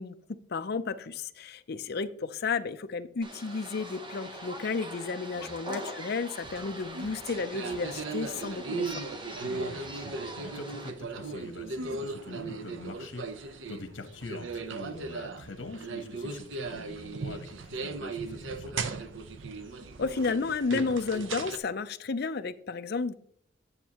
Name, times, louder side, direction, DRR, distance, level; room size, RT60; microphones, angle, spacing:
voice 1, 0.0-9.0 20.0-23.1, left 4 dB, 55° left, 10 dB, 0.5 m, -32 dB
sound 1, 3.2-10.9, right 1 dB, 25° right, 0.9 m, -42 dB
sound 2, 6.4-21.6, right 4 dB, 80° right, 0.6 m, -37 dB
voice 2, 9.3-18.9, left 2 dB, 90° left, 7 dB, 1.1 m, -44 dB
9.6 x 7.2 x 2.9 m, 0.65 s
head